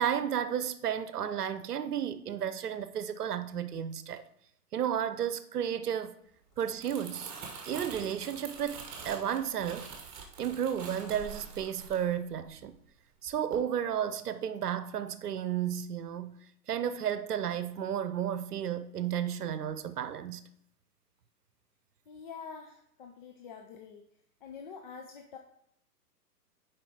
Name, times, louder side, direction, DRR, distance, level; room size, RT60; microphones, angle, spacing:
voice 1, 0.0-4.2 4.7-6.2 6.6-7.3 7.6-9.9 10.4-12.8 13.2-16.4 16.7-20.4, right 9 dB, 70° right, 0.8 m, -33 dB
Crumpling crinkling, 6.5-12.9 13.3-13.5, right 5 dB, 30° right, 1.5 m, -45 dB
voice 2, 22.1-24.0 24.4-25.4, left 6 dB, 30° left, 0.5 m, -46 dB
7.6 x 5.1 x 4.6 m
hypercardioid pair, 125°, 48 cm